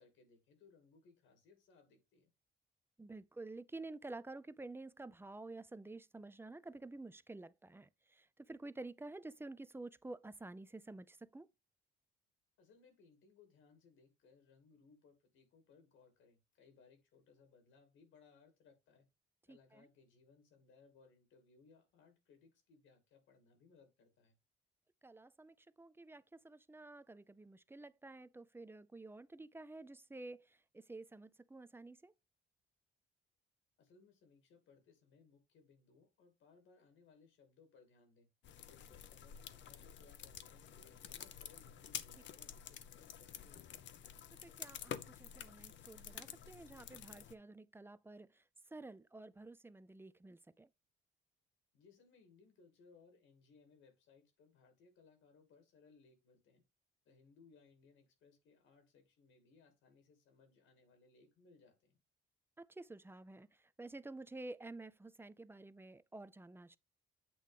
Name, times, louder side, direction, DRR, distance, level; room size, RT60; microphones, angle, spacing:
voice 1, 0.0-2.3 12.6-19.1 19.5-24.4 33.8-38.3 38.7-43.6 51.7-56.6 57.0-62.0, left 5 dB, 85° left, 2.6 m, -66 dB
voice 2, 3.0-11.5 19.5-19.9 25.0-32.1 44.4-48.4 48.7-50.7 62.6-66.8, right 2 dB, 10° right, 0.5 m, -51 dB
sound 1, 38.4-47.3, left 9 dB, 65° left, 0.8 m, -50 dB
8.5 x 3.1 x 5.1 m
cardioid pair, 90°, 20 cm